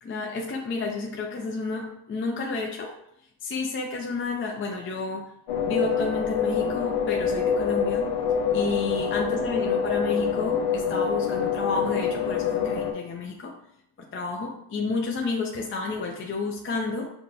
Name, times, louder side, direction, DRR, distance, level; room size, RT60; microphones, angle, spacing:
voice 1, 0.0-2.9 3.4-5.3 5.6-8.1 8.5-13.5 14.0-17.1, left 3 dB, 25° left, 1 dB, 0.5 m, -31 dB
sound 1, 5.5-12.9, left 7 dB, 90° left, 0.7 m, -26 dB
5.8 x 2.2 x 2.6 m, 0.75 s
cardioid pair, 90°, 48 cm